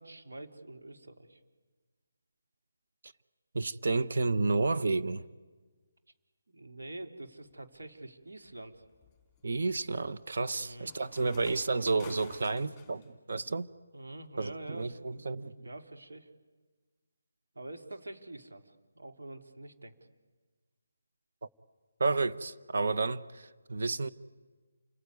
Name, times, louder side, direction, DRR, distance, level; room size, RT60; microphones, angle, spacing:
voice 1, 0.0-1.4 6.5-8.8 10.6-10.9 13.9-15.3 15.6-16.3 17.5-19.9, right 2 dB, 90° right, 3.2 m, -46 dB
voice 2, 3.5-5.2 9.4-13.7 14.4-15.7 21.4-21.5 22.0-24.1, right 3 dB, 50° right, 0.9 m, -31 dB
sound 1, 7.5-7.9 8.4-13.1, left 6 dB, 5° left, 2.8 m, -54 dB
28.5 x 19.5 x 9.5 m
hypercardioid pair, 175°, 0 cm